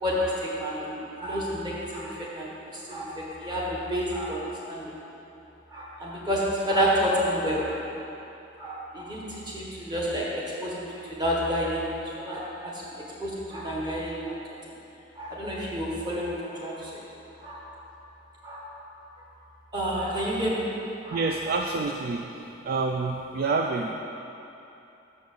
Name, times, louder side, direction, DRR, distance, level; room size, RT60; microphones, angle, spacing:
voice 1, 0.0-4.9 5.7-7.8 8.6-12.7 13.2-14.4 15.1-17.0 17.4-17.6 18.4-18.7 19.7-20.7 21.0-21.2, equal, 25° right, -5 dB, 1.4 m, -29 dB
voice 2, 21.1-22.3 22.6-23.9, right 3 dB, 50° right, 2 dB, 0.3 m, -27 dB
6.8 x 5.3 x 6.6 m, 2.9 s
head